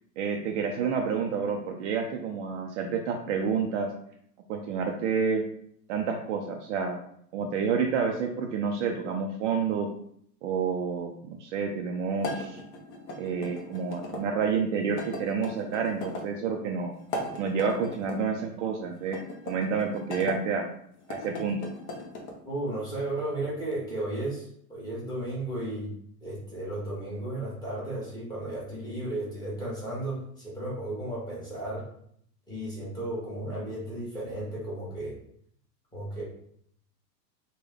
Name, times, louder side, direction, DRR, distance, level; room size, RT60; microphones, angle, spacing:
voice 1, 0.2-3.9 4.5-5.4 5.9-7.0 7.3-9.9 10.4-12.6 13.2-16.9 17.4-19.2 19.5-20.7 21.1-21.6, right 6 dB, 50° right, 2 dB, 0.5 m, -29 dB
sound 1, 12.2-14.2 15.0-16.3 17.0-18.2 19.0-20.4 21.0-22.4, left 1 dB, 40° left, 0.7 m, -38 dB
voice 2, 22.4-24.4 24.7-25.9 26.2-31.8 32.5-35.1 35.9-36.2, right 1 dB, 10° left, -7 dB, 1.2 m, -34 dB
3.4 x 2.2 x 3.4 m, 0.67 s
supercardioid pair, 155°, 48 cm